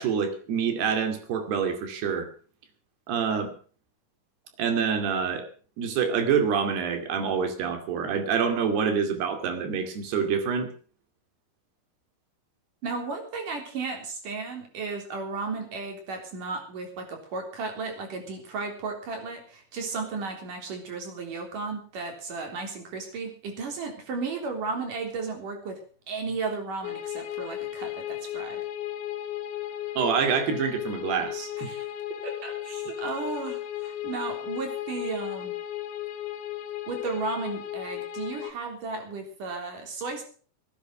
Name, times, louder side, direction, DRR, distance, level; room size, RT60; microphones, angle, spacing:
voice 1, 0.0-2.3 3.1-3.5 4.6-5.5 5.8-10.7 30.0-31.9, right 6 dB, 85° right, 7 dB, 4.5 m, -26 dB
voice 2, 12.8-25.8 26.1-28.6 32.2-35.5 36.9-40.2, right 4 dB, 55° right, 3 dB, 5.1 m, -34 dB
sound 1, 26.8-38.5, left 12 dB, 80° left, 2.9 m, -35 dB
18.0 x 10.0 x 6.0 m, 0.41 s
omnidirectional pair, 4.5 m